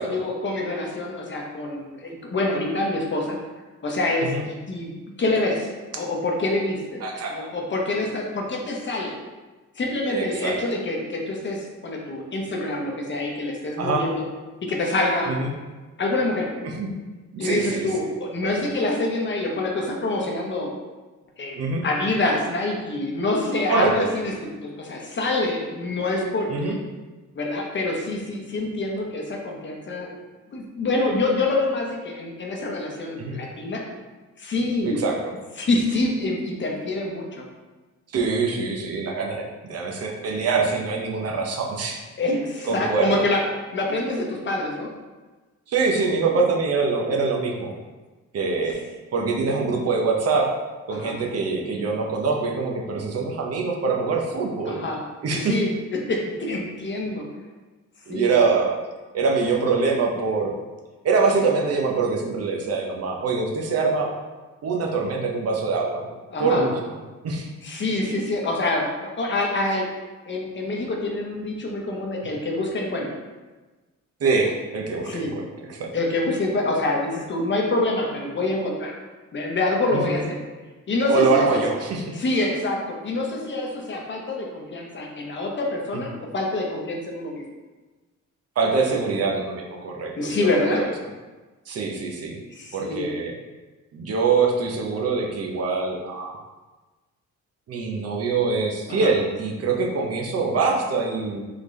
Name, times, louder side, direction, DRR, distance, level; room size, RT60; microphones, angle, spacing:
voice 1, 0.0-3.4 3.8-4.9 5.2-7.0 7.3-9.2 9.8-14.2 14.6-15.3 16.0-16.5 17.4-20.7 21.4-24.3 24.6-26.8 27.3-30.1 30.5-33.8 34.4-35.0 35.6-37.4 42.2-43.4 43.7-44.9 50.9-51.2 54.7-55.0 55.4-57.2 58.1-58.4 66.3-66.6 67.6-69.9 70.3-73.1 75.0-75.3 75.9-78.9 79.3-80.4 80.9-81.6 82.1-87.4 90.2-90.8 92.5-93.1 98.9-99.1, left 2 dB, 40° left, 0 dB, 0.8 m, -26 dB
voice 2, 7.0-7.5 10.1-10.6 13.8-14.1 15.3-15.5 16.6-16.9 17.4-17.9 21.6-21.8 23.7-24.1 26.5-26.8 33.2-33.4 34.8-35.3 38.1-42.0 42.7-43.2 45.7-47.7 48.3-48.8 49.1-50.5 50.9-54.8 55.2-55.6 58.1-58.8 59.1-60.5 61.0-64.1 64.6-66.0 66.4-66.7 67.2-67.5 74.2-75.4 75.7-75.9 79.9-80.2 81.1-82.0 88.6-90.9 91.7-92.4 92.7-93.3 93.9-96.4 97.7-101.4, right 4 dB, 55° right, 1 dB, 0.7 m, -24 dB
3.8 x 3.5 x 3.1 m, 1.2 s
cardioid pair, 90°, 30 cm